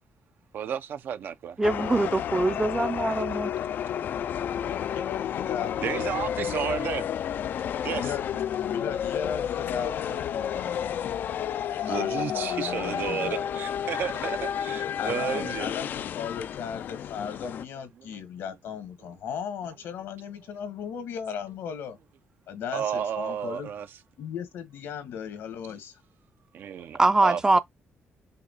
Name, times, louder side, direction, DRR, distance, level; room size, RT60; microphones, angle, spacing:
voice 1, 0.5-1.5 5.8-7.1 7.8-8.1 11.9-15.7 18.0-18.1 22.7-23.9 26.5-27.6, right 8 dB, 60° right, 0.6 m, -32 dB
sound 1, 1.6-17.6, left 9 dB, 60° left, 0.3 m, -31 dB
voice 2, 1.6-3.5 27.0-27.6, right 2 dB, 15° right, 0.5 m, -23 dB
voice 3, 5.0-6.5 7.9-11.0 11.7-13.7 15.0-22.0 22.5-23.7 24.2-25.9, left 7 dB, 85° left, 1.5 m, -36 dB
5.7 x 2.3 x 3.9 m
cardioid pair, 135°, 4 cm